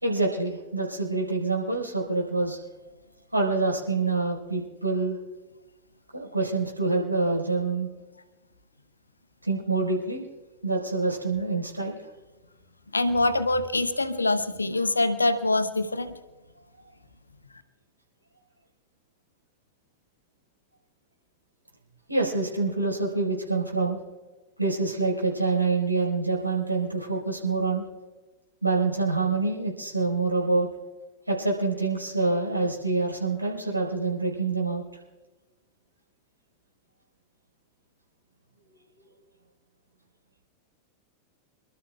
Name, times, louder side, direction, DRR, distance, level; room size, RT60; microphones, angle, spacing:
voice 1, 0.0-2.6 3.3-5.2 6.1-7.9 9.4-10.2 10.6-12.0 22.1-24.0 24.6-27.8 28.6-30.7 31.3-34.8, right 3 dB, 85° right, -2 dB, 4.3 m, -26 dB
voice 2, 12.9-16.2, left 2 dB, 80° left, 11 dB, 0.8 m, -24 dB
28.0 x 12.5 x 2.3 m, 1.2 s
figure-of-eight pair, 90°, 0 cm